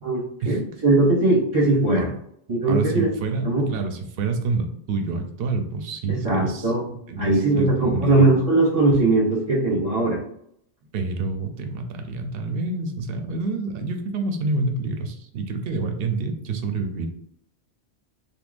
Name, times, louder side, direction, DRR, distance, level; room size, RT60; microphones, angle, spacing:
voice 1, 0.0-2.1 2.5-3.1 3.4-3.6 6.1-6.8 7.2-10.2, right 2 dB, 40° right, -3 dB, 0.8 m, -20 dB
voice 2, 2.7-6.7 7.1-8.3 10.9-17.1, right 3 dB, 65° right, 6 dB, 0.7 m, -28 dB
3.5 x 2.7 x 2.5 m, 0.71 s
omnidirectional pair, 1.1 m